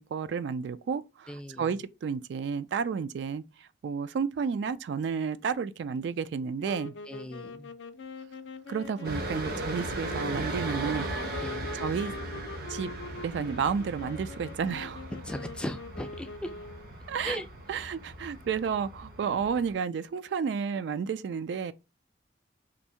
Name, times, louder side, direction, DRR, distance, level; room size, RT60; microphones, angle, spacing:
voice 1, 0.0-6.9 8.7-11.1 11.7-12.1 12.7-12.9 13.2-15.1 17.1-17.4 17.7-21.7, right 6 dB, 80° right, 0.3 m, -31 dB
voice 2, 1.3-1.7 7.1-7.7 11.4-11.7 15.2-16.5 17.2-17.5, left 1 dB, 5° left, 0.3 m, -38 dB
sound 1, 6.6-17.0, left 3 dB, 80° left, 0.4 m, -43 dB
sound 2, 9.0-19.7, right 1 dB, 55° right, 0.8 m, -38 dB
2.7 x 2.6 x 4.3 m
head